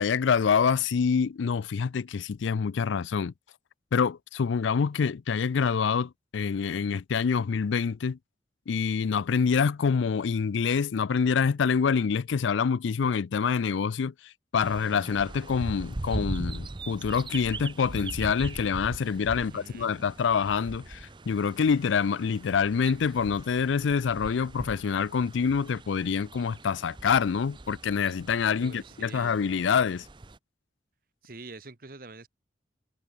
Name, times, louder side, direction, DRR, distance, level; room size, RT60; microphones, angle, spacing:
voice 1, 0.0-3.3 3.9-8.2 8.7-14.1 14.5-30.1, left 6 dB, 90° left, 0.4 m, -26 dB
sound 1, 14.6-30.4, right 2 dB, 25° right, 0.6 m, -40 dB
voice 2, 19.3-19.9 28.6-29.5 31.2-32.3, right 3 dB, 50° right, 1.3 m, -46 dB
head